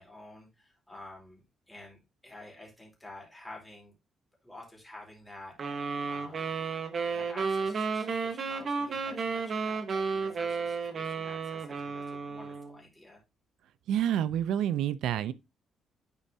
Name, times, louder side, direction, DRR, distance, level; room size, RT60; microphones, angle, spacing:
voice 1, 0.0-3.9 4.4-6.6 7.1-13.2, left 1 dB, 5° left, 2.8 m, -50 dB
sound 1, 5.6-12.8, right 5 dB, 35° right, 1.0 m, -33 dB
voice 2, 13.9-15.3, right 10 dB, 80° right, 0.4 m, -28 dB
10.5 x 4.2 x 2.7 m
cardioid pair, 170°, 0 cm